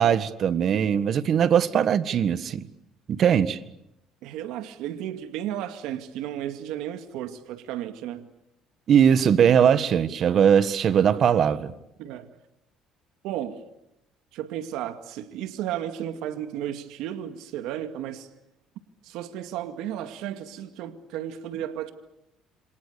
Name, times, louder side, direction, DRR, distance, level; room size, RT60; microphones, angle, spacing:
voice 1, 0.0-2.7 3.1-3.6 8.9-11.7, right 8 dB, 50° right, 1.6 m, -20 dB
voice 2, 4.2-8.3 12.0-12.3 13.2-13.6 14.3-18.3 19.0-21.9, right 11 dB, 80° right, 2.1 m, -33 dB
28.0 x 26.5 x 6.9 m
cardioid pair, 105°, 0 cm